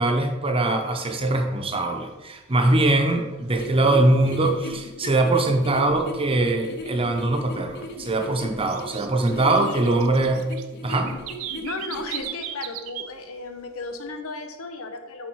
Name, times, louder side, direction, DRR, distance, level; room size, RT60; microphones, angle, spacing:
voice 1, 0.0-10.4 10.8-11.1, right 2 dB, 25° right, 4 dB, 0.8 m, -22 dB
sound 1, 0.7-0.8 1.2-1.4 1.7-2.2 2.6-3.8 4.2-4.3 4.8-4.9 5.4-5.5 5.9-6.0 6.4-7.2 7.4-13.1 13.4-13.8, right 11 dB, 80° right, 0.5 m, -38 dB
sound 2, 3.5-12.2, left 1 dB, 50° left, 1.0 m, -37 dB
voice 2, 9.5-9.8 11.6-15.3, left 3 dB, 80° left, 6 dB, 0.9 m, -35 dB
8.6 x 4.2 x 4.7 m, 1.2 s
head